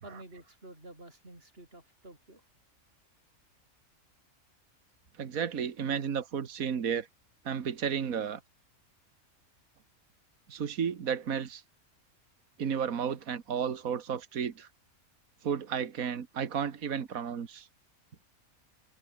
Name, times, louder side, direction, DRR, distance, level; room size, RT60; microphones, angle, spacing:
voice 1, 0.0-2.4, right 2 dB, 40° right, 6.5 m, -50 dB
voice 2, 5.2-7.1 7.5-8.4 10.5-11.6 12.6-14.7 15.4-17.7, right 7 dB, 70° right, 1.9 m, -32 dB
omnidirectional pair, 1.5 m